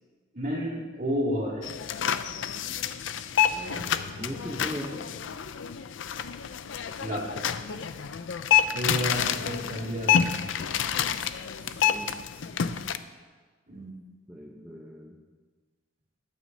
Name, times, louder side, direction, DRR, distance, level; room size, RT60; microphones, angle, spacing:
voice 1, 0.3-1.7 7.0-7.3 8.7-10.4 13.7-14.0, equal, 50° right, -4 dB, 2.6 m, -31 dB
sound 1, 1.6-13.0, left 9 dB, 70° left, 0.5 m, -28 dB
voice 2, 3.5-5.1 11.7-12.4 14.3-15.2, equal, 10° right, -2 dB, 0.8 m, -40 dB
19.5 x 9.1 x 2.7 m, 1.4 s
head